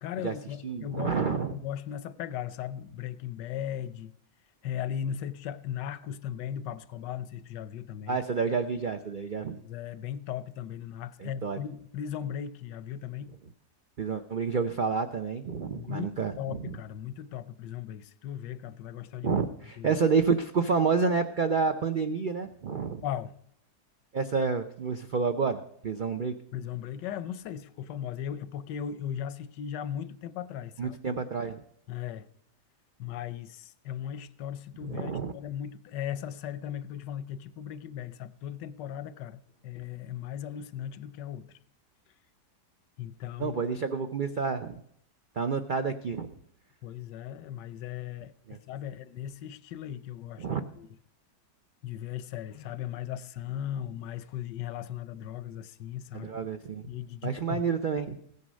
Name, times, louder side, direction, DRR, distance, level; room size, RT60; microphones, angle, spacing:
voice 1, 0.0-4.1 4.6-8.2 9.6-13.3 15.7-16.1 16.4-19.4 19.8-20.0 23.0-23.4 26.5-31.0 31.9-32.3 33.0-41.5 43.0-43.6 46.8-50.9 51.8-56.3 56.9-57.6, left 10 dB, 85° left, 1.3 m, -37 dB
voice 2, 0.6-1.6 8.1-9.6 11.2-11.6 14.0-16.8 19.2-23.0 24.1-26.3 30.8-31.6 34.8-35.3 43.4-44.7 45.4-46.3 48.5-48.6 50.4-50.6 56.1-56.8 57.2-58.2, right 5 dB, 85° right, 0.4 m, -29 dB
16.0 x 9.6 x 6.2 m
omnidirectional pair, 1.8 m